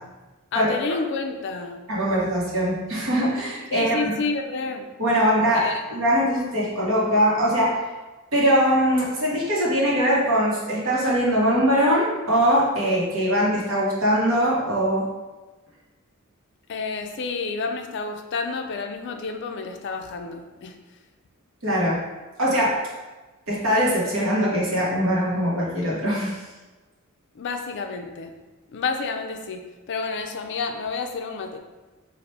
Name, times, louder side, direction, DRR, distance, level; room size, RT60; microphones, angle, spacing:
voice 1, 0.5-1.8 3.7-4.9 5.5-5.8 16.7-20.8 27.4-28.3 28.7-31.6, left 4 dB, 55° left, 5 dB, 0.4 m, -30 dB
voice 2, 1.9-4.1 5.0-7.8 8.3-15.0 21.6-22.0 22.4-22.7 23.5-26.4, equal, 65° right, -5 dB, 1.2 m, -21 dB
4.1 x 2.5 x 3.2 m, 1.2 s
head